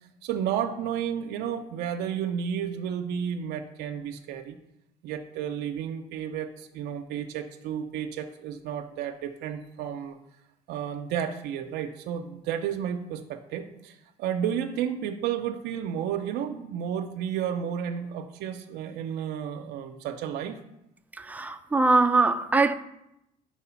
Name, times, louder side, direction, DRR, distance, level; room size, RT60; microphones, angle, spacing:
voice 1, 0.2-4.6 5.0-10.2 10.7-20.6, right 8 dB, 85° right, 0.5 m, -32 dB
voice 2, 21.1-22.7, right 3 dB, 10° right, 0.3 m, -22 dB
4.8 x 4.3 x 5.6 m
cardioid pair, 110°, 17 cm